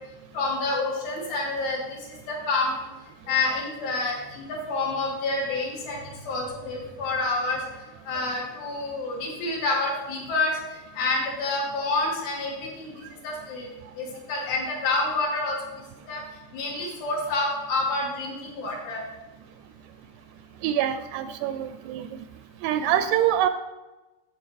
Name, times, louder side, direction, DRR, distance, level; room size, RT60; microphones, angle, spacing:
voice 1, 0.3-1.8 2.3-2.9 3.3-6.0 6.3-7.6 8.1-10.5 11.0-12.9 13.2-13.7 14.0-15.6 16.1-16.2 16.5-19.0 22.8-23.0, left 3 dB, 70° left, -3 dB, 4.7 m, -28 dB
voice 2, 20.6-22.1 22.6-23.5, right 11 dB, 85° right, 10 dB, 2.5 m, -25 dB
12.0 x 7.7 x 4.6 m, 1.1 s
omnidirectional pair, 5.0 m